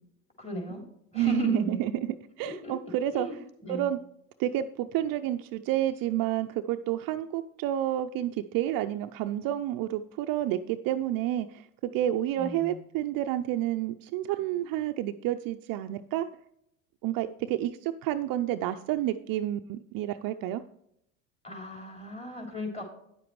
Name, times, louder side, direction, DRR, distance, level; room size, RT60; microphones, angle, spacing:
voice 1, 0.4-0.8 1.1-1.8 2.4-2.7 3.1-3.9 12.4-12.8 21.4-22.8, left 1 dB, 15° left, 0 dB, 3.4 m, -35 dB
voice 2, 1.1-3.3 3.7-4.0 4.4-16.3 17.0-20.6, right 13 dB, 50° right, 8 dB, 0.5 m, -30 dB
9.8 x 7.7 x 3.1 m, 0.75 s
hypercardioid pair, 85°, 44 cm